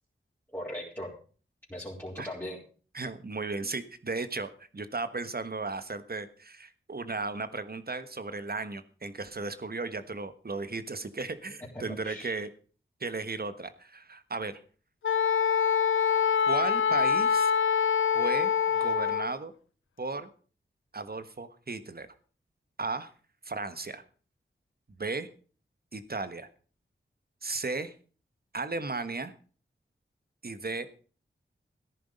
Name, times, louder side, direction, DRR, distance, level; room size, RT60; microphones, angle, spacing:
voice 1, 0.5-1.1 1.7-2.6 11.7-12.3, equal, 10° left, -7 dB, 4.2 m, -39 dB
voice 2, 2.9-12.5 13.0-14.6 16.5-17.5 18.1-18.5 18.8-19.5 20.0-20.3 20.9-22.1 22.8-23.1 23.4-24.0 24.9-25.3 25.9-26.5 27.4-27.9 28.5-29.3 30.4-30.9, right 3 dB, 50° right, 12 dB, 1.4 m, -35 dB
Wind instrument woodwind instrument, 15.0-19.3, left 7 dB, 75° left, 0.5 m, -25 dB
14.0 x 10.5 x 5.3 m, 0.40 s
cardioid pair, 50°, 21 cm